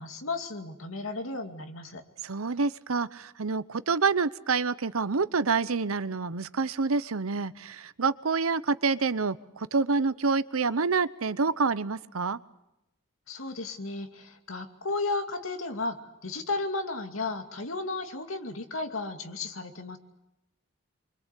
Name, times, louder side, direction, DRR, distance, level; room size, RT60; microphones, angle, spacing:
voice 1, 0.0-2.0 13.3-20.0, left 3 dB, 80° left, 5 dB, 2.5 m, -34 dB
voice 2, 2.2-12.4, right 4 dB, 90° right, 16 dB, 0.9 m, -27 dB
25.5 x 24.5 x 8.4 m, 0.88 s
head